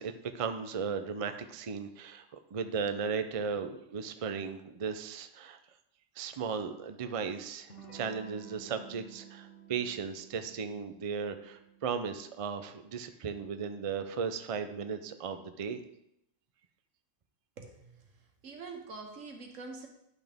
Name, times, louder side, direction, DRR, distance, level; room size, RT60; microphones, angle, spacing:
voice 1, 0.0-2.2 2.5-5.6 6.2-15.8, right 6 dB, 40° right, 8 dB, 0.5 m, -36 dB
Electric guitar / Strum, 7.7-13.1, right 6 dB, 70° left, 1.7 m, -53 dB
voice 2, 17.6-18.0 18.4-19.9, right 3 dB, 90° right, 3 dB, 1.6 m, -45 dB
11.0 x 5.9 x 3.5 m, 0.80 s
omnidirectional pair, 1.3 m